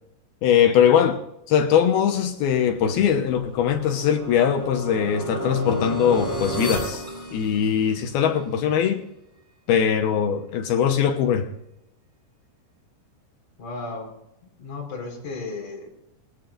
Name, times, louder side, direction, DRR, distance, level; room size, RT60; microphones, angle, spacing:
voice 1, 0.4-1.2 1.5-7.0 7.3-9.0 9.7-11.5, left 8 dB, 70° left, 2.6 m, -21 dB
sound 1, 2.9-8.1, right 1 dB, 5° left, 5.4 m, -32 dB
voice 2, 13.6-14.1 14.6-15.9, left 3 dB, 35° left, 5.5 m, -34 dB
23.0 x 17.0 x 2.5 m
omnidirectional pair, 5.2 m